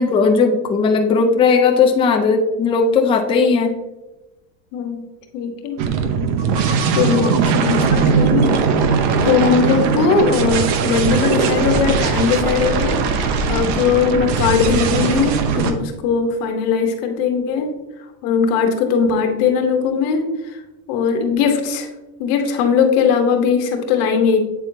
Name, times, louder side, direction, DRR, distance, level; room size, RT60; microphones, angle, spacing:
voice 1, 0.0-3.7, left 4 dB, 10° left, 3 dB, 0.4 m, -16 dB
voice 2, 4.7-5.0 5.3-5.8 6.9-8.5 9.2-17.7 18.2-20.3 20.9-21.9 22.2-24.4, left 6 dB, 65° left, 3 dB, 1.3 m, -19 dB
sound 1, 5.8-15.7, right 5 dB, 60° right, 0.9 m, -19 dB
8.2 x 4.3 x 2.8 m, 1.0 s
supercardioid pair, 135°, 49 cm